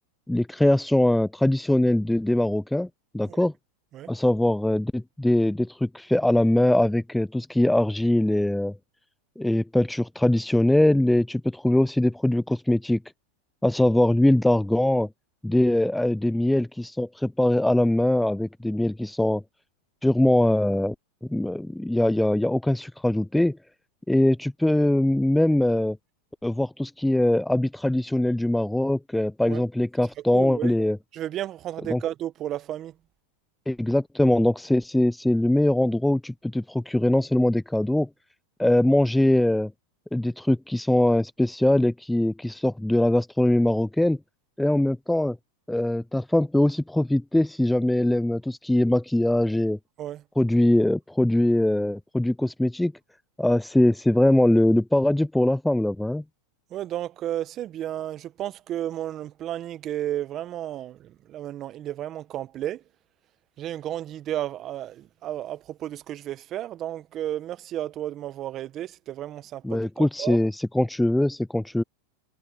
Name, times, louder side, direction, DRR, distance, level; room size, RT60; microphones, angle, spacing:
voice 1, 0.3-2.9 3.1-3.5 4.1-8.7 9.4-13.0 13.6-15.1 15.4-19.4 20.0-20.9 21.3-23.6 24.1-26.0 26.4-31.0 31.9-32.0 33.7-38.1 38.6-39.7 40.1-44.2 44.6-45.4 45.7-49.8 50.4-52.9 53.4-56.2 69.6-71.8, left 1 dB, 5° left, 0.3 m, -22 dB
voice 2, 30.3-30.8 31.1-32.9 50.0-50.2 56.7-62.8 63.6-70.4, right 12 dB, 40° right, 1.1 m, -33 dB
hypercardioid pair, 110°, 0 cm